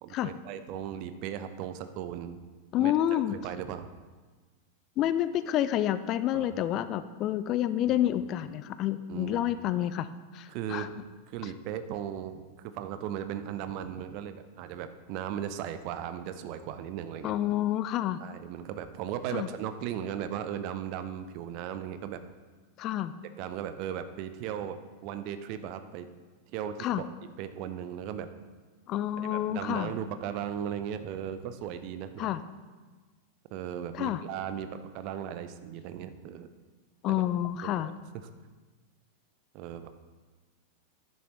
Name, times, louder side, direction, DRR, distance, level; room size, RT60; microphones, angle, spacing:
voice 1, 0.0-2.4 2.8-3.9 6.3-6.5 7.9-8.2 9.1-9.5 10.5-10.9 11.3-17.3 18.2-22.2 23.4-26.1 26.5-27.0 27.4-28.3 29.2-32.3 33.5-36.5 37.1-37.2 37.6-37.9 39.5-40.0, right 9 dB, 45° right, 10 dB, 0.6 m, -37 dB
voice 2, 2.7-3.3 5.0-10.1 10.3-10.9 17.2-18.2 19.3-19.5 22.8-23.1 26.8-27.0 28.9-29.9 32.2-32.4 33.9-34.2 37.0-37.9, left 12 dB, 35° left, 13 dB, 0.4 m, -29 dB
10.5 x 10.0 x 3.1 m, 1.4 s
figure-of-eight pair, 90°, 0 cm